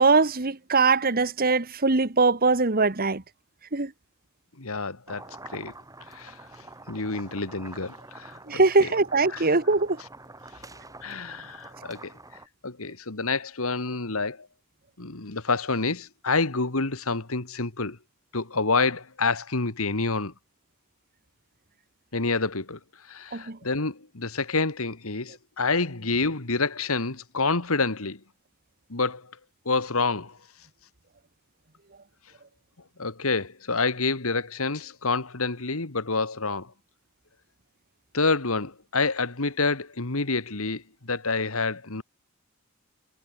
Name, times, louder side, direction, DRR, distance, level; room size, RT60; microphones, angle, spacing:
voice 1, 0.0-3.2 3.7-3.9 8.5-10.0 23.3-23.6, right 3 dB, 40° right, 1.4 m, -22 dB
voice 2, 4.6-5.2 5.5-5.7 6.1-6.4 6.9-8.9 9.3-9.4 11.0-12.1 12.6-14.5 15.0-18.0 18.3-20.3 22.1-22.8 23.1-28.2 28.9-29.3 29.7-30.4 33.0-36.7 38.1-42.0, left 3 dB, 70° left, 2.0 m, -28 dB
sound 1, 5.1-12.5, right 2 dB, 15° right, 5.8 m, -46 dB
head